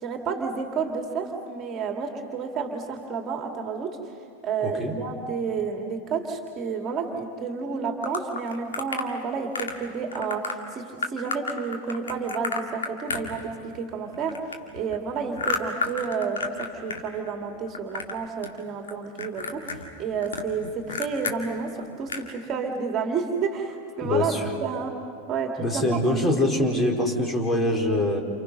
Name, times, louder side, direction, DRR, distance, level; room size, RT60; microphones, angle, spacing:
voice 1, 0.0-4.0 4.4-14.4 14.7-25.0 25.3-26.0, right 5 dB, 30° right, 3 dB, 2.5 m, -30 dB
voice 2, 4.6-5.0 24.0-24.5 25.6-28.2, left 1 dB, 15° left, 1 dB, 4.1 m, -24 dB
sound 1, 8.0-9.1 9.5-9.8 10.1-10.5 11.0-13.8 14.1-17.0 17.3-18.2 18.4-18.9 19.2-21.4 21.8-21.9 22.1-22.3, left 4 dB, 70° left, 2.2 m, -31 dB
30.0 x 29.0 x 5.5 m, 2.5 s
figure-of-eight pair, 90°, 0 cm